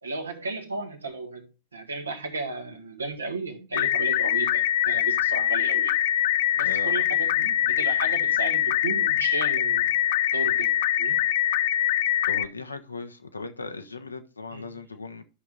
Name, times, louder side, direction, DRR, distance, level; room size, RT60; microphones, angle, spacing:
voice 1, 0.0-6.0 6.5-9.9 10.3-11.2 14.5-14.6, right 3 dB, 75° right, 1.6 m, -34 dB
sound 1, 3.7-12.5, left 12 dB, 55° left, 0.4 m, -23 dB
voice 2, 12.2-15.2, left 3 dB, 80° left, 1.0 m, -37 dB
13.0 x 5.9 x 2.5 m
figure-of-eight pair, 90°, 0 cm